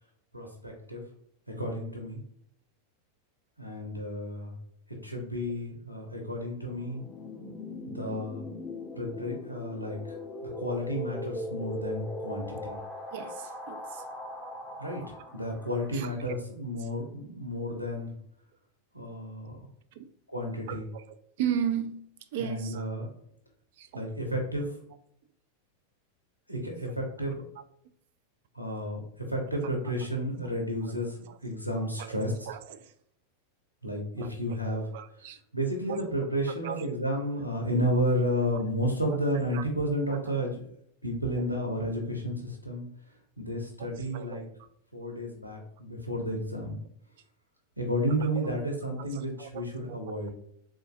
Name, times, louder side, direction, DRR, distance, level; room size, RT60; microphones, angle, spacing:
voice 1, 0.3-1.0 1.5-2.2 3.6-4.5 4.9-7.0 7.9-8.4 8.9-10.2 10.4-12.8 14.8-15.0 15.3-18.1 18.9-19.6 20.3-20.9 22.4-23.1 23.9-24.7 26.5-27.4 28.5-32.3 33.8-34.9 35.5-40.6 41.0-42.9 43.4-44.4 44.9-46.8 47.8-50.3, equal, 85° left, 0.6 m, -32 dB
sound 1, 6.7-16.1, left 1 dB, 10° left, 0.5 m, -40 dB
voice 2, 13.1-14.1 15.9-16.4 16.8-16.9 20.0-20.1 20.7-22.0 22.3-22.9 23.8-24.0 26.9-27.0 31.0-31.4 32.0-32.9 34.2-34.3 34.7-35.4 35.9-36.0 36.5-37.2 39.1-39.2 39.5-39.6 41.4-41.5 43.8-44.5 48.2-48.6 49.0-50.0, right 9 dB, 50° right, 0.3 m, -37 dB
3.8 x 2.5 x 2.5 m
figure-of-eight pair, 90°, 0 cm